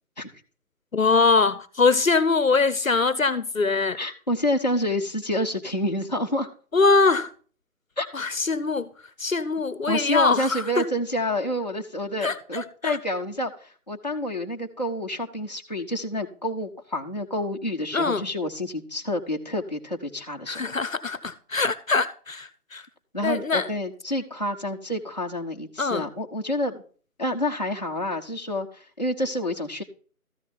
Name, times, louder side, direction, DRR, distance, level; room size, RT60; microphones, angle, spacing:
voice 1, 0.9-4.0 6.7-7.3 8.1-8.9 9.2-10.9 12.2-13.0 17.9-18.2 20.5-22.8 23.2-23.7 25.8-26.1, left 4 dB, 60° left, 0.9 m, -23 dB
voice 2, 4.0-6.5 8.0-8.1 9.9-20.6 23.1-26.8 27.2-29.8, left 1 dB, 30° left, 0.9 m, -28 dB
14.0 x 6.6 x 4.0 m
figure-of-eight pair, 175°, 45 cm